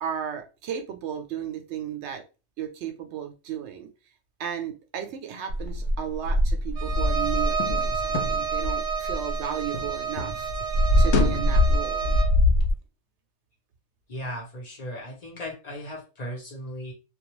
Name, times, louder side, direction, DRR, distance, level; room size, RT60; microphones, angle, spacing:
voice 1, 0.0-2.2 2.6-3.9 4.4-10.5 11.0-12.2, right 9 dB, 80° right, 5 dB, 0.9 m, -34 dB
sound 1, 5.5-9.9 10.2-12.7, left 1 dB, 75° left, 0.8 m, -23 dB
Bowed string instrument, 6.8-12.4, right 6 dB, 65° right, 0.4 m, -30 dB
voice 2, 14.1-16.9, equal, 40° left, -1 dB, 0.9 m, -37 dB
2.3 x 2.2 x 3.0 m, 0.30 s
omnidirectional pair, 1.2 m